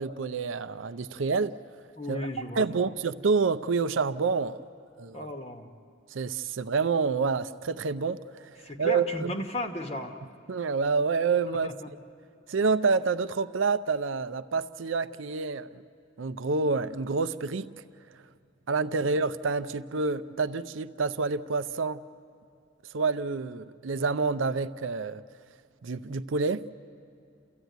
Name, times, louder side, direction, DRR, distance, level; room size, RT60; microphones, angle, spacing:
voice 1, 0.0-1.6 2.1-2.3 2.6-4.6 5.0-5.3 6.1-8.5 8.8-9.3 10.5-11.7 12.5-15.8 16.2-17.7 18.7-22.0 22.9-25.2 25.8-26.7, right 4 dB, 85° right, 0.6 m, -28 dB
voice 2, 2.0-2.9 5.1-5.7 8.6-10.1 11.6-11.9, left 1 dB, 30° left, 1.0 m, -35 dB
29.5 x 14.5 x 9.2 m
head